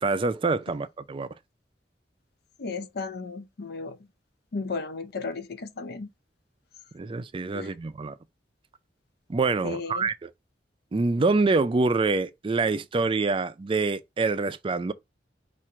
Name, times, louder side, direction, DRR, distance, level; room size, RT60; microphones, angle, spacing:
voice 1, 0.0-1.3 6.9-8.2 9.3-10.3 10.9-14.9, right 3 dB, 30° right, 0.4 m, -26 dB
voice 2, 2.6-4.0 4.5-6.1 7.5-7.7 9.6-10.1, left 4 dB, 65° left, 0.6 m, -34 dB
4.3 x 2.5 x 4.7 m
head